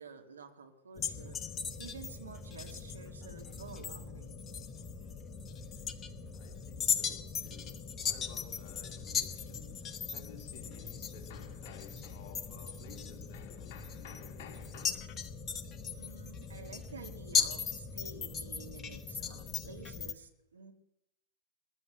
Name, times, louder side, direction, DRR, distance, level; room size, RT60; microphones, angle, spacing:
voice 1, 0.0-1.4 1.8-4.4 16.0-20.7, right 5 dB, 70° right, 1.8 m, -50 dB
sound 1, 1.0-20.1, left 6 dB, 25° left, 1.2 m, -38 dB
voice 2, 6.3-14.9, left 8 dB, 50° left, 2.9 m, -53 dB
21.5 x 9.8 x 6.5 m
figure-of-eight pair, 90°, 0 cm